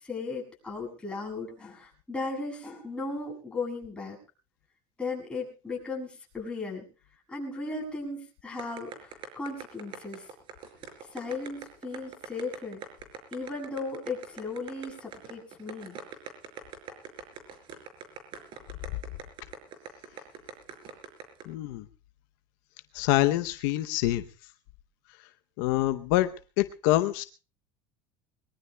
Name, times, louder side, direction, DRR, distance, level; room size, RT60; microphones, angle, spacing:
voice 1, 0.0-4.2 5.0-6.9 7.3-10.3 11.0-12.8 13.3-16.0 16.9-17.0, left 3 dB, 10° left, -1 dB, 7.3 m, -36 dB
sound 1, 8.6-21.4, right 7 dB, 50° right, 5.1 m, -42 dB
voice 2, 21.5-21.9 22.9-24.2 25.6-27.2, left 15 dB, 75° left, 10 dB, 0.8 m, -26 dB
22.0 x 22.0 x 2.3 m, 0.34 s
supercardioid pair, 125°, 11 cm